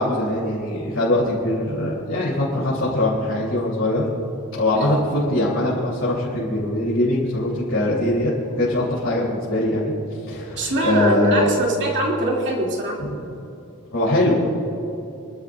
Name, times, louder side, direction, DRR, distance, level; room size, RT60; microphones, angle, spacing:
voice 1, 0.0-4.1 4.5-8.3 8.6-9.9 10.3-11.5 13.0-13.2 13.9-14.4, left 1 dB, 60° left, -8 dB, 3.7 m, -22 dB
voice 2, 10.6-13.0, right 1 dB, 50° right, -3 dB, 2.8 m, -23 dB
27.0 x 13.0 x 2.6 m, 2.8 s
head